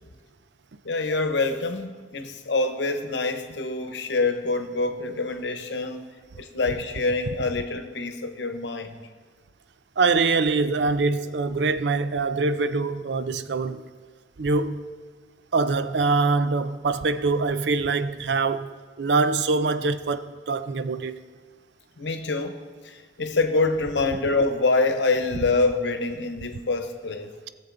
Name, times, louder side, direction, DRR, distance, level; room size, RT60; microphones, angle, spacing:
voice 1, 0.8-6.1 6.4-9.0 22.0-22.6 22.8-27.3, left 3 dB, 90° left, 0.9 m, -26 dB
voice 2, 10.0-13.8 14.4-14.8 15.5-18.7 19.0-21.2, right 3 dB, 70° right, 0.5 m, -24 dB
17.0 x 7.1 x 3.8 m
head